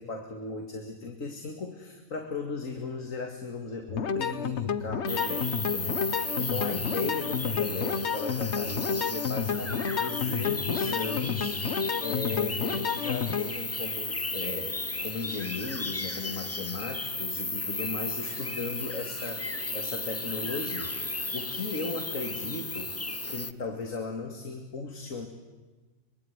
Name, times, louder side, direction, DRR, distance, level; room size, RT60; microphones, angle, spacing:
voice 1, 0.0-11.6 12.0-23.0 23.3-25.3, left 4 dB, 70° left, 4 dB, 2.6 m, -36 dB
sound 1, 3.9-13.5, left 7 dB, 55° left, 1.3 m, -30 dB
sound 2, 5.1-23.5, left 2 dB, 15° left, 0.6 m, -34 dB
24.0 x 23.5 x 9.5 m, 1.3 s
omnidirectional pair, 1.4 m